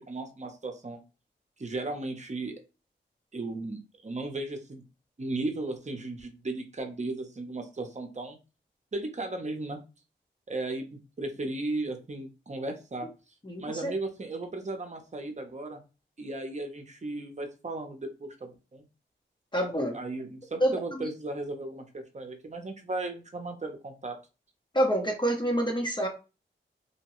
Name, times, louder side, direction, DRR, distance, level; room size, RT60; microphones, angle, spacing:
voice 1, 0.1-1.0 1.6-2.6 3.3-4.8 5.2-8.4 8.9-9.8 10.5-13.1 13.6-15.8 16.2-18.8 19.9-24.1, right 2 dB, 35° right, 5 dB, 0.7 m, -36 dB
voice 2, 13.4-13.9 19.5-20.0 20.6-21.1 24.7-26.1, equal, 25° left, 1 dB, 0.7 m, -27 dB
2.8 x 2.2 x 2.9 m, 0.31 s
cardioid pair, 45°, 20 cm